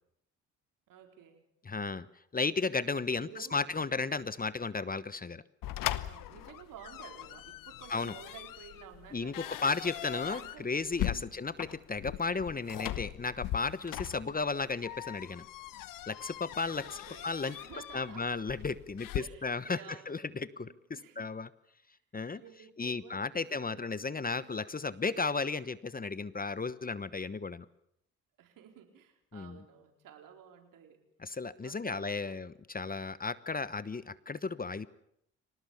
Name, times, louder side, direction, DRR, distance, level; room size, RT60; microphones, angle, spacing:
voice 1, 0.9-1.4 3.1-3.8 6.1-9.5 9.8-10.9 11.2-11.5 14.0-14.4 16.8-18.4 19.2-20.2 20.6-21.3 22.3-24.6 28.4-31.0 31.6-32.4, right 8 dB, 70° right, 4 dB, 4.5 m, -53 dB
voice 2, 1.6-2.1 2.3-5.4 7.9-8.1 9.1-15.5 16.1-17.5 17.9-21.5 22.1-22.4 22.8-27.7 29.3-29.6 31.2-34.9, left 4 dB, 25° left, 16 dB, 1.1 m, -34 dB
sound 1, 5.6-19.2, left 14 dB, 70° left, 1.1 m, -40 dB
25.0 x 19.0 x 7.2 m, 0.77 s
hypercardioid pair, 55°, 34 cm